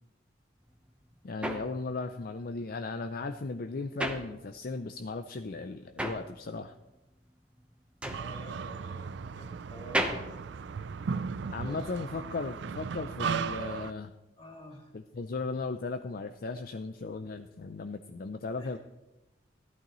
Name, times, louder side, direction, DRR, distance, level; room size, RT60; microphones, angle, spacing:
sound 1, 0.6-4.9 5.2-11.5, right 1 dB, 5° right, 0.9 m, -37 dB
voice 1, 1.2-6.7 11.5-14.1 14.9-18.8, left 3 dB, 55° left, 7 dB, 0.5 m, -36 dB
voice 2, 8.1-9.1 9.3-10.3 11.6-11.9 14.4-14.9 18.6-18.8, equal, 30° left, 0 dB, 2.6 m, -49 dB
sound 2, 8.1-13.9, right 5 dB, 75° right, 0.4 m, -36 dB
14.5 x 11.5 x 3.1 m, 0.98 s
head